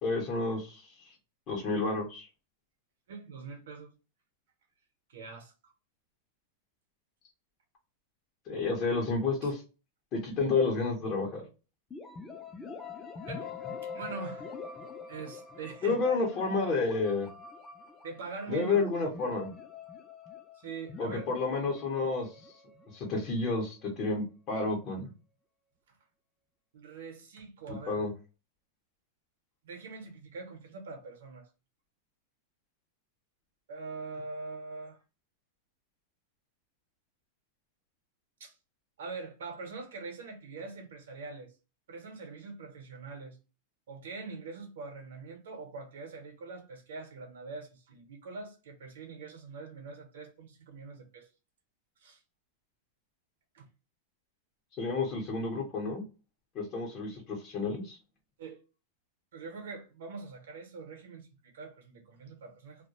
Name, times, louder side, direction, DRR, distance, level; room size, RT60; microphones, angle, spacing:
voice 1, 0.0-1.1 1.5-2.3 8.5-9.6 10.1-11.4 15.8-17.3 18.5-19.5 21.0-22.3 22.9-25.1 27.9-28.1 54.8-56.0 56.5-58.0, left 3 dB, 35° left, 0.7 m, -30 dB
voice 2, 3.1-3.9 5.1-5.7 9.4-9.5 13.3-13.5 13.8-14.5 15.1-16.0 18.0-18.8 20.5-21.2 26.7-28.1 29.6-31.5 33.7-35.0 38.4-38.6 39.0-41.5 41.9-43.4 43.9-51.3 52.0-52.2 53.5-53.7 58.4-58.6 59.3-62.9, right 4 dB, 90° right, 0.7 m, -43 dB
sound 1, 11.9-23.6, left 5 dB, 10° left, 0.3 m, -45 dB
2.3 x 2.1 x 2.8 m
supercardioid pair, 160°, 0 cm